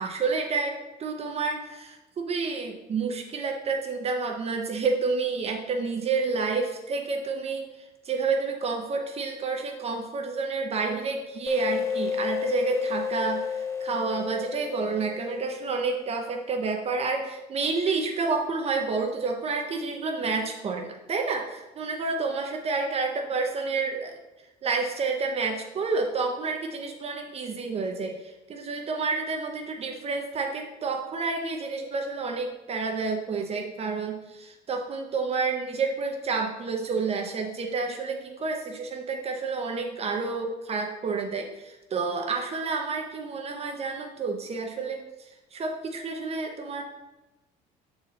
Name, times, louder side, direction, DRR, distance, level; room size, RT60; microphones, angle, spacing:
voice 1, 0.0-7.7 8.0-24.1 24.6-45.0 45.5-46.8, right 4 dB, 40° right, 2 dB, 0.8 m, -29 dB
sound 1, 11.5-16.8, left 6 dB, 15° left, 0.6 m, -32 dB
6.9 x 4.2 x 4.0 m, 1.1 s
cardioid pair, 110°, 16 cm